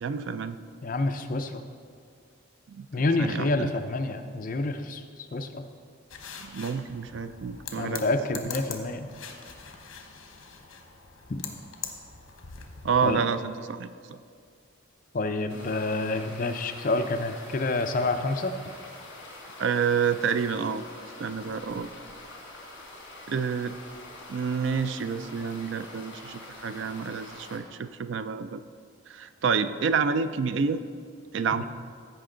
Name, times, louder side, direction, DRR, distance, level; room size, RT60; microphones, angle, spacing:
voice 1, 0.0-0.6 2.7-2.9 3.2-3.7 6.4-8.0 12.8-14.2 19.6-20.8 21.2-21.9 23.3-23.7 24.3-28.6 29.1-30.8 31.3-31.6, right 6 dB, 60° right, 12 dB, 0.4 m, -28 dB
voice 2, 0.8-1.6 2.9-5.0 5.3-5.6 7.8-9.1 11.3-11.4 13.0-13.2 15.1-18.5 31.6-31.7, left 2 dB, 40° left, 7 dB, 0.5 m, -28 dB
sound 1, 6.1-13.2, left 7 dB, 70° left, 1.0 m, -43 dB
sound 2, 15.5-27.6, left 2 dB, 55° left, 2.2 m, -45 dB
15.0 x 5.2 x 3.8 m, 2.2 s
head